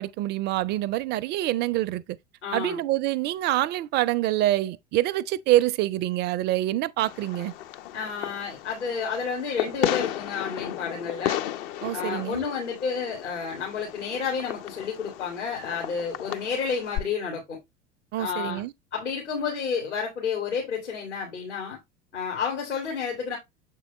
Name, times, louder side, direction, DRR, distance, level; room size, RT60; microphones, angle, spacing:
voice 1, 0.0-2.2 2.5-7.5 11.8-12.4 18.1-18.7, right 15 dB, 30° right, 0.4 m, -26 dB
voice 2, 2.4-2.8 7.9-11.4 11.9-17.6 18.2-18.6 18.9-21.8 22.1-23.4, left 6 dB, 75° left, 2.6 m, -30 dB
Fireworks, 7.0-17.0, left 12 dB, 50° left, 0.7 m, -34 dB
7.4 x 4.6 x 3.1 m
figure-of-eight pair, 75°, 36 cm